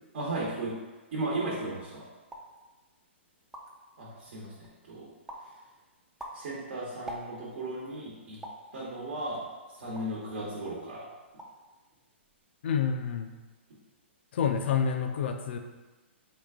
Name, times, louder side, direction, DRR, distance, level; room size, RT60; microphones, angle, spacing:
voice 1, 0.1-0.7 1.1-2.0 4.0-5.1 6.3-8.4 8.7-9.4 9.7-11.1, right 2 dB, 60° right, -5 dB, 1.0 m, -35 dB
sound 1, 2.2-2.6 3.1-3.2 3.4-3.9 4.4-4.8 5.3-5.5 6.0-7.6 8.4-8.7 9.3-10.2 10.6-10.8 11.2-11.7 11.9-12.4, right 1 dB, 5° right, 0.4 m, -45 dB
voice 2, 12.6-13.3 14.3-15.6, left 7 dB, 60° left, 6 dB, 0.4 m, -28 dB
3.8 x 2.4 x 3.5 m, 1.2 s
hypercardioid pair, 130°, 7 cm